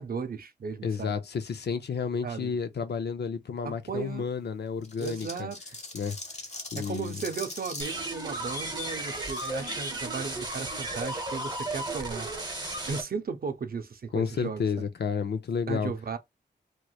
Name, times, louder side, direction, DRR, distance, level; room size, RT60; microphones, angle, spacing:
voice 1, 0.0-1.2 2.2-2.5 3.6-4.3 5.0-5.6 6.8-12.3 12.9-14.6 15.7-16.2, right 5 dB, 55° right, 0.5 m, -35 dB
voice 2, 0.8-5.5 5.9-6.2 6.7-7.2 14.1-15.9, left 6 dB, 65° left, 0.5 m, -31 dB
sound 1, 4.8-8.0 9.2-9.5, left 2 dB, 40° left, 1.0 m, -41 dB
sound 2, 7.8-13.0, right 2 dB, 25° right, 0.9 m, -34 dB
3.0 x 3.0 x 2.3 m
wide cardioid pair, 115°, 18 cm